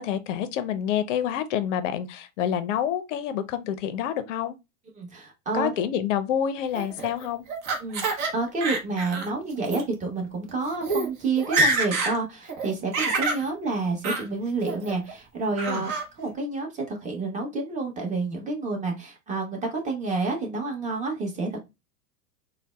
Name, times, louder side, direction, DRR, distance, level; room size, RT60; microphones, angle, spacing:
voice 1, 0.0-4.5 5.5-7.4 15.7-15.8, left 9 dB, 55° left, 0.6 m, -28 dB
voice 2, 5.0-5.7 7.8-21.6, right 3 dB, 15° right, 1.1 m, -29 dB
Laughter, 6.7-8.3 8.6-9.3 9.6-9.8 10.5-10.6 10.8-11.1 11.4-12.2 12.5-13.4 14.0-14.2 14.7-15.1 15.6-16.0, right 3 dB, 40° right, 1.0 m, -26 dB
3.9 x 2.2 x 2.2 m
hypercardioid pair, 105°, 45 cm